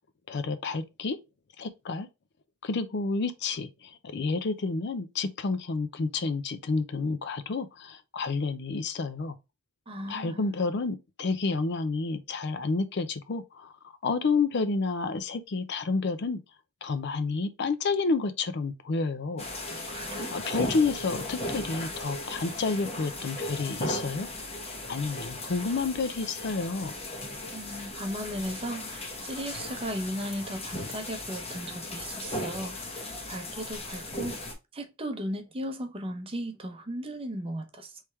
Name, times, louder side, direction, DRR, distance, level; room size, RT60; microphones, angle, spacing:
voice 1, 0.3-1.2 1.6-2.1 2.6-9.4 10.1-13.7 14.0-16.4 16.8-19.4 19.8-19.9 20.3-24.3 24.9-26.9, left 4 dB, 55° left, 0.5 m, -30 dB
voice 2, 9.9-10.5 19.9-20.3 27.5-34.4 34.7-38.0, equal, 25° right, 0.7 m, -36 dB
sound 1, 19.4-34.5, left 1 dB, 30° left, 1.0 m, -37 dB
3.5 x 3.2 x 4.2 m
head